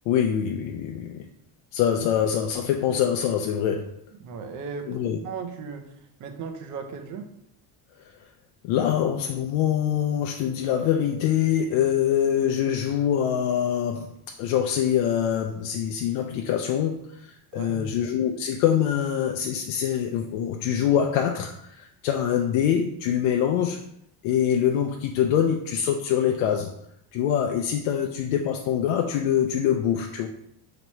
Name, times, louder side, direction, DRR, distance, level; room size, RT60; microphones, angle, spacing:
voice 1, 0.1-1.3 1.7-3.9 4.8-5.2 8.6-14.1 14.4-23.8 24.2-26.7 27.1-30.3, left 9 dB, 85° left, 3 dB, 0.5 m, -24 dB
voice 2, 4.2-5.9 6.2-7.3 17.5-18.0, right 5 dB, 40° right, 6 dB, 0.6 m, -36 dB
4.4 x 3.0 x 3.0 m, 0.73 s
cardioid pair, 155°, 45 cm